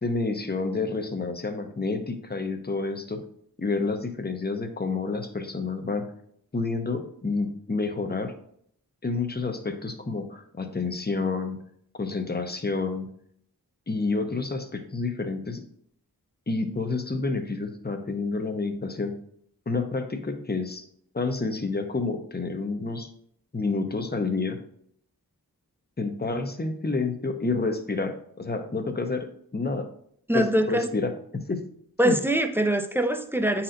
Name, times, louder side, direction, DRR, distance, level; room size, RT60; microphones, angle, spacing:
voice 1, 0.0-3.2 3.6-6.1 6.5-8.3 9.0-11.6 11.9-13.1 13.9-15.6 16.5-19.1 19.7-20.8 21.1-23.1 23.5-24.6 26.0-29.3 29.5-29.9 30.3-31.1 31.5-31.6 32.0-32.2, left 3 dB, 25° left, 6 dB, 0.7 m, -29 dB
voice 2, 30.3-30.9 32.0-33.6, right 1 dB, 5° right, 7 dB, 0.5 m, -23 dB
8.6 x 4.3 x 2.6 m, 0.66 s
wide cardioid pair, 50°, 36 cm